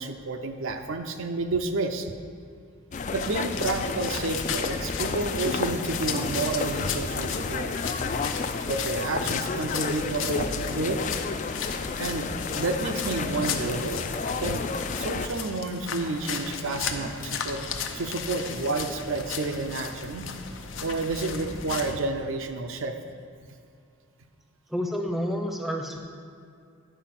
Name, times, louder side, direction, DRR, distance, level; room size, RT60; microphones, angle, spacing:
voice 1, 0.0-2.1 3.1-7.9 8.7-11.0 12.0-14.1 14.4-14.6 15.0-17.6 17.9-20.2 20.8-23.0, right 3 dB, 85° right, 5 dB, 0.6 m, -30 dB
sound 1, 2.9-15.3, left 4 dB, 35° left, 0.3 m, -31 dB
sound 2, 3.2-22.0, left 6 dB, 80° left, 0.7 m, -36 dB
sound 3, 11.1-21.5, left 2 dB, 50° left, 0.9 m, -51 dB
voice 2, 24.7-26.0, equal, ahead, 2 dB, 0.6 m, -29 dB
10.0 x 4.8 x 5.9 m, 2.5 s
head